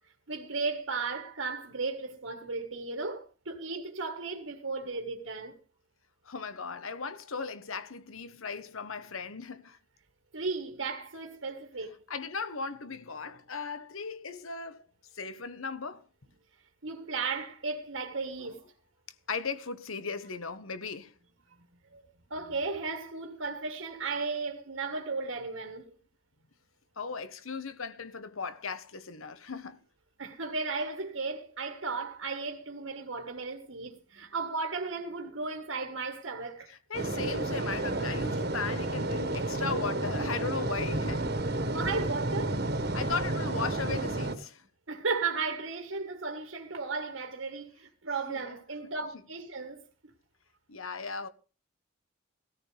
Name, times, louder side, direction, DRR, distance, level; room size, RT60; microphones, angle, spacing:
voice 1, 0.3-5.6 10.3-12.0 16.8-18.6 21.9-22.0 22.3-25.9 30.2-36.7 41.6-42.6 44.9-49.8, right 4 dB, 75° right, 1.6 m, -35 dB
voice 2, 6.2-9.8 12.1-14.9 15.1-16.1 18.4-18.5 19.3-21.1 27.0-29.8 36.7-41.3 42.9-44.6 48.3-48.9 50.7-51.3, left 4 dB, 85° left, 1.2 m, -37 dB
sound 1, 36.9-44.3, right 2 dB, 50° right, 1.6 m, -31 dB
16.5 x 14.0 x 3.4 m
head